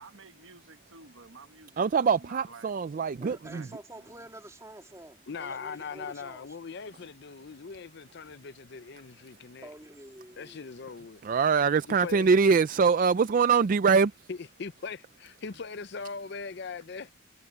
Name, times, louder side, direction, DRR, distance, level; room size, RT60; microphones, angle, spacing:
voice 1, 0.0-2.7 3.5-4.2, right 4 dB, 80° right, 1.4 m, -51 dB
voice 2, 1.8-3.6 11.2-14.1, right 5 dB, 45° right, 0.3 m, -23 dB
voice 3, 3.2-6.6 9.6-10.7, right 1 dB, 15° right, 2.8 m, -48 dB
voice 4, 5.3-9.7 10.4-11.2 11.9-12.3 14.3-17.1, left 5 dB, 55° left, 0.6 m, -40 dB
head